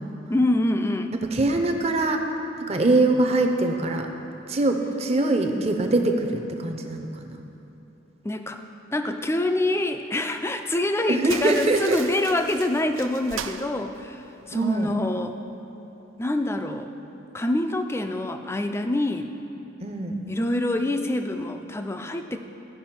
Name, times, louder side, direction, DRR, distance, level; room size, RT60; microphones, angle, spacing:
voice 1, 0.3-1.1 8.2-8.6 8.9-15.4 16.2-16.9 17.3-19.3 20.3-22.4, left 1 dB, 10° left, 6 dB, 0.3 m, -26 dB
voice 2, 1.1-2.2 2.7-4.1 4.5-7.4 11.1-12.0 14.5-14.9 19.8-20.1, right 2 dB, 30° right, 4 dB, 0.6 m, -23 dB
sound 1, 11.2-14.6, right 8 dB, 75° right, 0.4 m, -38 dB
15.5 x 5.5 x 4.4 m, 3.0 s
head